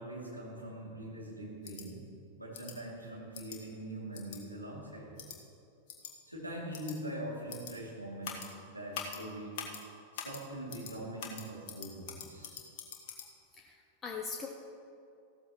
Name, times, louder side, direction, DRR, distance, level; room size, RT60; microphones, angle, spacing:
voice 1, 0.0-2.0 2.4-5.2 6.3-9.6 10.1-12.6, right 1 dB, 90° right, -5 dB, 2.7 m, -43 dB
sound 1, 1.6-1.9 2.5-2.8 3.3-3.6 4.1-4.4 5.2-5.4 5.9-6.1 6.7-7.0 7.5-7.7 8.2-8.5 8.9-9.2 9.6-9.8 10.2-10.4 10.7-10.9 11.2-13.3, left 8 dB, 50° left, 1.5 m, -43 dB
voice 2, 13.5-14.5, left 5 dB, 20° left, 1 dB, 0.9 m, -41 dB
15.0 x 13.0 x 3.0 m, 2.6 s
figure-of-eight pair, 90°, 0 cm